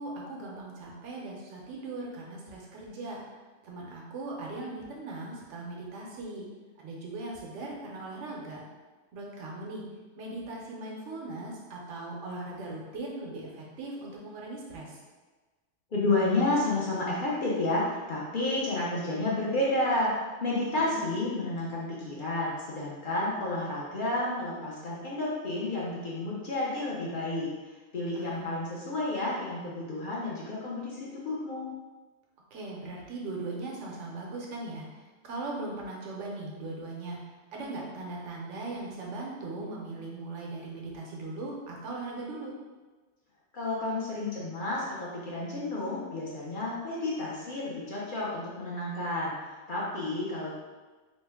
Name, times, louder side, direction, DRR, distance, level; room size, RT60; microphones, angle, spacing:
voice 1, 0.0-3.2 3.6-6.5 6.8-8.6 9.1-9.9 10.2-15.0 20.8-21.1 28.1-28.6 32.5-34.8 35.2-37.2 37.5-42.5, right 2 dB, 75° right, -2 dB, 1.0 m, -39 dB
voice 2, 15.9-20.1 20.4-27.5 27.9-31.7 43.5-49.3 49.7-50.5, left 2 dB, 50° left, -6 dB, 0.7 m, -31 dB
3.1 x 2.1 x 3.4 m, 1.3 s
omnidirectional pair, 1.2 m